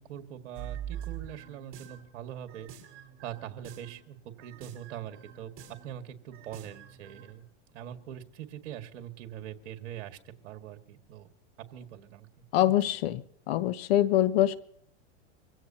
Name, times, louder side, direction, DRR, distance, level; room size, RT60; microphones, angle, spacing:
voice 1, 0.0-2.7 3.2-5.5 5.8-7.4 7.7-11.3 11.7-12.3 12.7-12.8, right 10 dB, 65° right, 6 dB, 2.0 m, -43 dB
sound 1, 0.5-2.1 2.5-4.0 4.4-5.9 6.3-7.3, right 10 dB, 35° right, 5.7 m, -44 dB
voice 2, 12.5-13.2 13.5-14.6, left 12 dB, 55° left, 15 dB, 0.9 m, -24 dB
24.5 x 16.5 x 2.9 m, 0.63 s
supercardioid pair, 145°, 37 cm